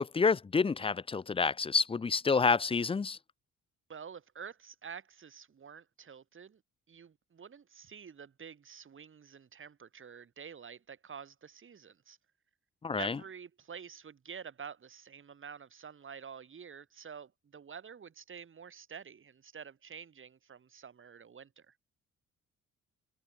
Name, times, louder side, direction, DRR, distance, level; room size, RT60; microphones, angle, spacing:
voice 1, 0.0-3.2 12.8-13.2, left 5 dB, 20° left, 0.5 m, -28 dB
voice 2, 3.9-6.6 6.9-12.2 13.0-21.8, right 7 dB, 40° right, 2.8 m, -48 dB
cardioid pair, 90°, 30 cm